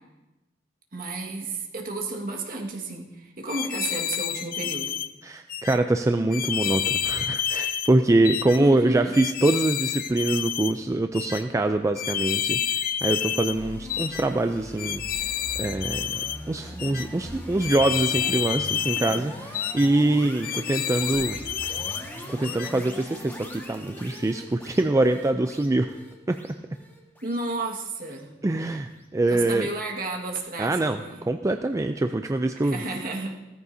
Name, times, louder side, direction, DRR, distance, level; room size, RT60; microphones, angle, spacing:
voice 1, 0.9-5.0 8.6-9.1 27.2-28.4 29.3-31.2 32.6-33.4, right 2 dB, 50° right, 0 dB, 1.8 m, -32 dB
sound 1, 3.5-5.1 5.5-5.8 6.3-7.9 8.2-8.6 9.1-10.7 11.1-11.4 11.9-13.6 13.9-14.2 14.8-16.4 16.8-17.1 17.6-19.2 19.5-19.9 20.4-22.0 22.4-22.7, left 9 dB, 50° left, 0.5 m, -29 dB
voice 2, 5.2-15.3 15.6-16.1 16.5-21.4 22.3-25.9 26.3-26.4 28.4-29.7 30.6-31.0 31.3-32.8, right 2 dB, 15° right, 7 dB, 0.4 m, -24 dB
sound 2, 13.5-28.7, equal, 10° left, 1.6 m, -41 dB
16.0 x 14.0 x 2.7 m, 1.0 s
head